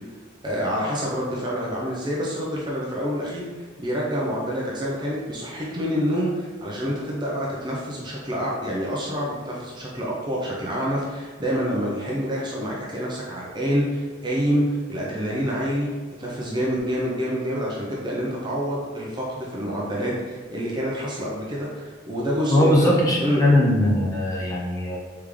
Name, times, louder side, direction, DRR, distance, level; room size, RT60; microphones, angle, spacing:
voice 1, 0.4-3.5 3.8-15.9 16.2-22.9 23.2-23.4, equal, 20° right, -4 dB, 0.5 m, -27 dB
voice 2, 22.5-25.0, left 1 dB, 15° left, -5 dB, 0.7 m, -20 dB
3.6 x 3.4 x 3.2 m, 1.5 s
head